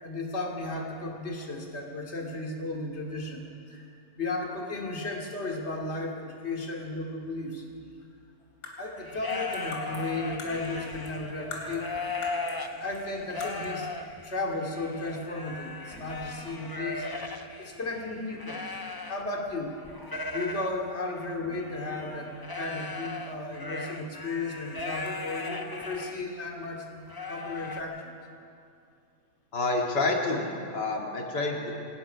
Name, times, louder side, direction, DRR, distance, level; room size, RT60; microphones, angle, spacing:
voice 1, 0.0-3.9 4.2-7.7 8.8-11.9 12.7-13.9 14.2-17.1 17.6-18.7 19.1-19.8 20.3-27.0 27.3-28.1, left 2 dB, 40° left, 0 dB, 2.8 m, -34 dB
sound 1, 8.4-11.2 11.5-12.7 12.9-13.0 13.4-13.8, left 2 dB, 65° left, 3.9 m, -43 dB
sound 2, 9.0-19.5 19.8-26.2 26.6-26.7 27.1-27.8, left 3 dB, 20° left, 0.6 m, -37 dB
voice 2, 29.5-31.7, left 2 dB, 85° left, 0 dB, 2.7 m, -28 dB
25.0 x 19.0 x 5.6 m, 2.5 s
omnidirectional pair, 1.8 m